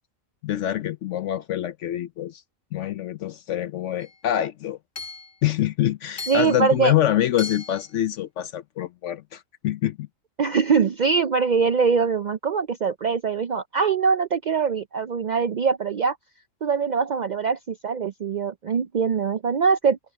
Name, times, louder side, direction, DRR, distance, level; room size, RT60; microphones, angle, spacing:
voice 1, 0.4-2.4 2.7-4.8 5.4-10.1, left 12 dB, 70° left, 0.9 m, -25 dB
Hammer / Chink clink, 4.0-4.1 5.0-5.3 6.2-6.7 7.4-7.9, left 4 dB, 40° left, 1.8 m, -36 dB
voice 2, 6.3-6.9 10.4-16.2 16.6-20.0, right 5 dB, 80° right, 0.4 m, -22 dB
omnidirectional pair, 1.4 m